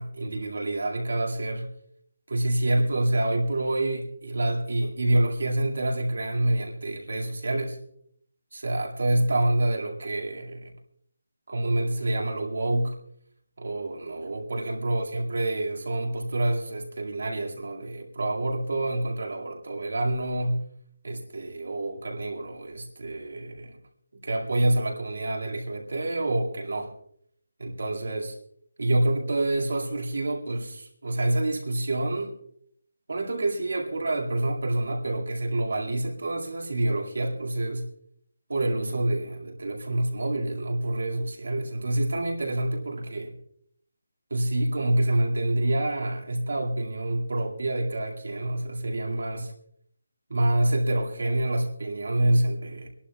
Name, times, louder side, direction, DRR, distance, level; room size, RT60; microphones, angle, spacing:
voice 1, 0.0-1.7 2.3-7.8 8.5-10.7 11.5-13.0 13.6-20.6 21.0-23.8 24.1-26.9 27.6-28.4 28.8-32.3 33.1-37.9 38.5-43.3 44.3-49.5 50.3-52.9, right 1 dB, 65° right, 1 dB, 2.1 m, -27 dB
30.0 x 11.5 x 2.4 m, 0.66 s
hypercardioid pair, 180°, 0 cm